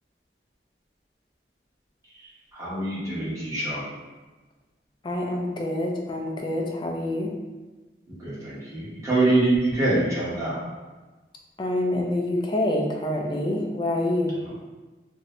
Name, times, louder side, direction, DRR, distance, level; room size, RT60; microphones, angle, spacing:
voice 1, 2.5-3.8 8.1-10.6, right 2 dB, 20° right, -9 dB, 0.9 m, -24 dB
voice 2, 5.0-7.3 11.6-14.3, left 1 dB, 25° left, 0 dB, 0.3 m, -26 dB
2.6 x 2.6 x 3.1 m, 1.2 s
head